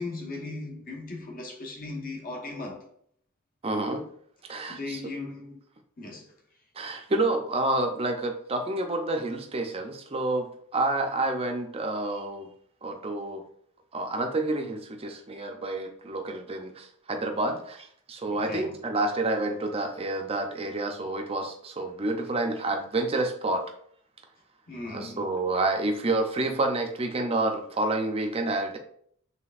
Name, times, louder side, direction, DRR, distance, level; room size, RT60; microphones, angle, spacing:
voice 1, 0.0-2.9 4.5-5.6 6.0-6.3 18.3-18.8 24.7-25.2, left 3 dB, 40° left, 1.0 m, -38 dB
voice 2, 3.6-4.0 4.5-5.0 6.8-12.5 12.8-13.4 13.9-23.6 24.8-28.8, right 2 dB, 25° right, 0.5 m, -29 dB
5.8 x 3.3 x 2.5 m
head